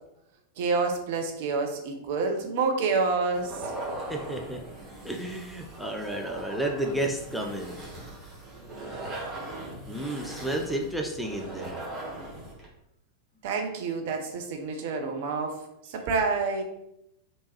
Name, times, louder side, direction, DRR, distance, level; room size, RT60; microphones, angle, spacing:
voice 1, 0.6-3.6 13.4-15.6 15.8-16.6, right 4 dB, 50° right, 4 dB, 0.6 m, -28 dB
sound 1, 3.3-12.7, right 2 dB, 20° right, 1.1 m, -40 dB
voice 2, 4.1-4.6 5.0-7.8 9.9-11.8, right 1 dB, ahead, 1 dB, 0.4 m, -32 dB
3.5 x 2.9 x 2.9 m, 0.81 s
figure-of-eight pair, 90°, 0 cm